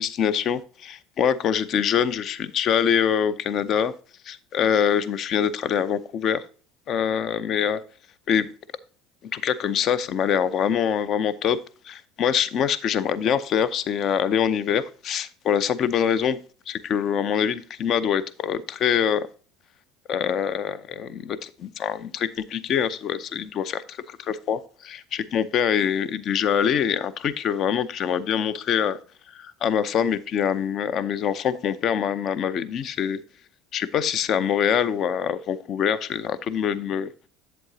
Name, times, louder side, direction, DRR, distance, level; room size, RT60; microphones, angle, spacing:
voice 1, 0.0-3.9 4.2-6.4 6.9-7.8 8.3-8.5 9.3-16.4 16.7-19.3 20.1-29.0 29.3-33.2 33.7-37.1, left 8 dB, 50° left, 0.5 m, -24 dB
7.9 x 7.7 x 2.8 m
supercardioid pair, 105°, 0 cm